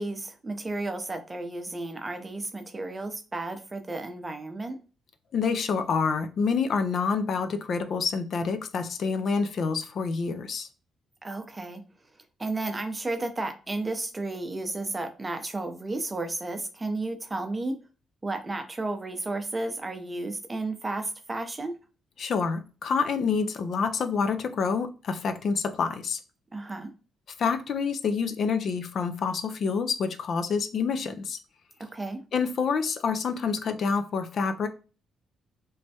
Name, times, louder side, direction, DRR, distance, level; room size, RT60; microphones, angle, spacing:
voice 1, 0.0-4.8 11.2-11.8 12.4-17.7 18.2-21.7 26.5-26.9 31.8-32.2, right 2 dB, 20° right, 0.5 m, -33 dB
voice 2, 5.3-10.7 22.2-26.2 27.4-31.4 32.3-34.7, left 5 dB, 60° left, 0.4 m, -27 dB
3.1 x 2.2 x 2.7 m
cardioid pair, 90°, 0 cm